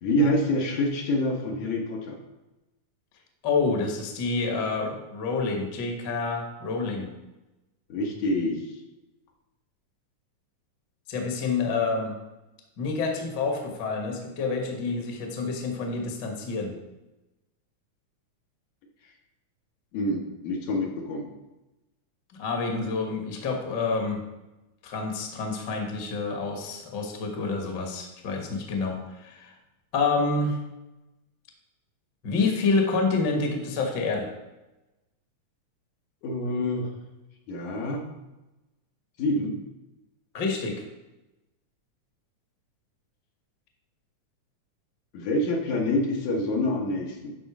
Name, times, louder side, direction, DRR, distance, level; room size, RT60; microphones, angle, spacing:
voice 1, 0.0-2.2 7.9-8.8 19.9-21.3 36.2-36.9 37.5-38.1 39.2-39.5 45.1-47.3, left 1 dB, 75° left, 1 dB, 2.7 m, -27 dB
voice 2, 3.4-7.1 11.1-12.1 12.8-16.7 22.3-24.2 24.8-29.5 29.9-30.6 32.2-34.3 40.3-40.8, left 4 dB, 45° left, 2 dB, 1.6 m, -28 dB
11.5 x 3.9 x 6.1 m, 1.0 s
omnidirectional pair, 3.5 m